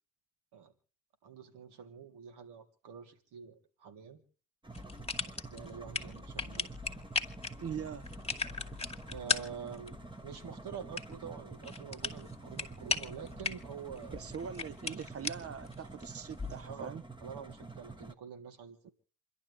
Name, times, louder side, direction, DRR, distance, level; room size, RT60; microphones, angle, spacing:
voice 1, 1.2-4.2 5.2-6.7 9.1-9.9 10.2-14.2 16.6-16.9 17.2-18.9, right 7 dB, 60° right, 3.5 m, -47 dB
sound 1, 4.6-18.1, right 3 dB, 10° right, 1.5 m, -48 dB
sound 2, 4.7-16.6, left 4 dB, 15° left, 2.4 m, -39 dB
voice 2, 7.6-8.1 14.1-17.0, right 7 dB, 30° right, 0.7 m, -42 dB
28.0 x 12.0 x 3.5 m
hypercardioid pair, 60°, 45 cm